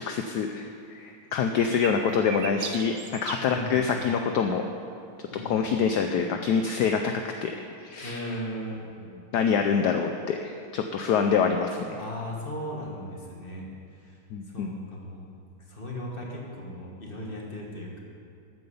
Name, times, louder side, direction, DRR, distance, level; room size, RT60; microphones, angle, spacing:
voice 1, 0.0-4.7 5.4-7.1 7.4-7.5 7.8-8.2 9.3-12.0 14.3-14.7, left 6 dB, 70° left, 5 dB, 1.0 m, -26 dB
sound 1, 1.7-3.5, right 7 dB, 65° right, 1.2 m, -37 dB
voice 2, 3.4-3.9 5.3-5.7 8.0-8.8 12.0-13.7 13.9-14.2 14.5-15.3 15.7-18.0, equal, 25° left, -2 dB, 1.7 m, -37 dB
13.5 x 9.2 x 5.5 m, 2.4 s
omnidirectional pair, 2.3 m